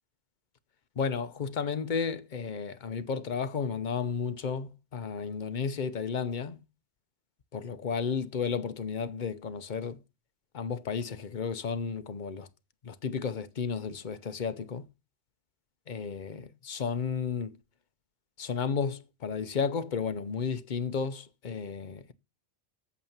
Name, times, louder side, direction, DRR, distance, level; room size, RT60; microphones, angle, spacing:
voice 1, 1.0-6.6 7.5-10.0 10.5-12.5 12.8-14.9 15.9-17.6 18.4-22.1, left 6 dB, 45° left, 0.9 m, -33 dB
8.3 x 7.5 x 7.3 m
omnidirectional pair, 1.2 m